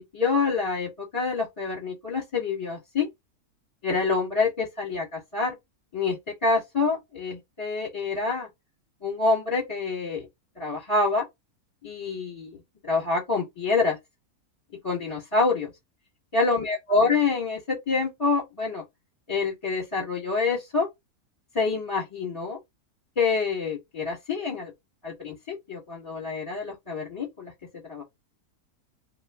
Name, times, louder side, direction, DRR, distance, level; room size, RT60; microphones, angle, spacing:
voice 1, 0.0-3.1 3.8-5.5 5.9-6.2 6.4-8.5 9.0-10.3 10.6-11.2 11.8-12.6 12.8-14.0 14.8-15.7 16.3-18.8 19.3-20.9 21.5-22.6 23.1-24.7 25.0-27.5 27.8-28.0, left 4 dB, 25° left, 1.5 m, -26 dB
2.7 x 2.4 x 3.4 m
omnidirectional pair, 1.6 m